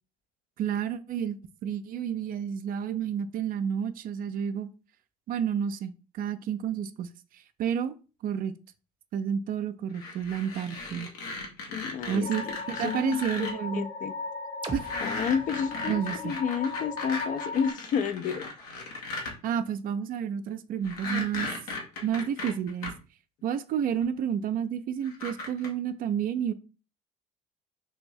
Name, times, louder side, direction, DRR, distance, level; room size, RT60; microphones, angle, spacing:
voice 1, 0.6-1.4 1.6-4.7 5.3-7.1 7.6-8.0 8.2-8.6 9.1-11.1 12.1-13.8 14.7-14.9 15.9-16.4 19.4-21.5 22.0-23.0 23.4-26.5, right 8 dB, 50° right, 0.4 m, -30 dB
sound 1, 9.9-13.5 14.8-19.3 20.8-22.9 24.0-24.1 25.0-25.7, left 3 dB, 80° left, 0.9 m, -37 dB
voice 2, 11.7-14.1 15.0-18.5, left 7 dB, 45° left, 0.4 m, -31 dB
sound 2, 12.2-17.7, left 4 dB, 25° left, 0.8 m, -37 dB
sound 3, 14.6-18.5, right 2 dB, 25° right, 0.8 m, -45 dB
3.5 x 2.5 x 3.2 m
hypercardioid pair, 55°, 18 cm